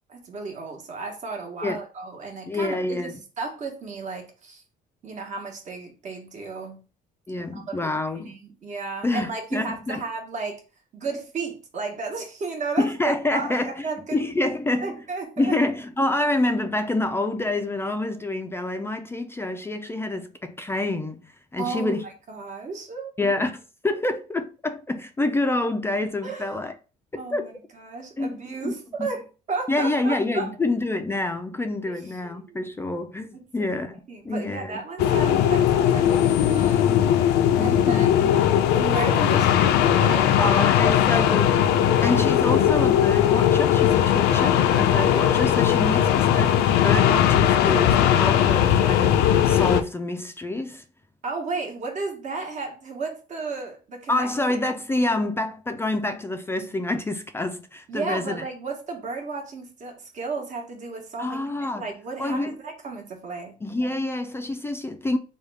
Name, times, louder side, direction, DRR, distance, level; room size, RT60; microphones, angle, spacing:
voice 1, 0.1-4.6 5.0-6.8 7.5-10.6 10.9-14.5 14.8-15.6 21.6-23.1 26.2-26.6 27.2-30.5 31.9-32.0 32.2-32.6 33.3-33.7 34.1-37.1 37.6-38.4 38.7-40.6 41.1-41.2 41.6-42.2 45.5-46.1 51.2-54.6 57.9-61.4 61.7-63.5, right 4 dB, 45° right, 1.1 m, -34 dB
voice 2, 2.5-3.2 7.3-8.4 9.0-10.0 12.8-13.8 14.1-15.0 15.4-22.0 23.2-26.7 27.3-27.4 28.2-28.4 28.6-28.7 29.0-29.1 29.7-33.9 34.2-34.8 37.5-38.3 40.4-41.5 42.0-50.8 54.1-58.4 61.2-61.9 62.2-62.5 63.6-65.2, left 2 dB, 15° left, 0.3 m, -27 dB
sound 1, 35.0-49.8, left 10 dB, 85° left, 0.4 m, -19 dB
3.4 x 2.3 x 3.3 m
cardioid pair, 110°, 17 cm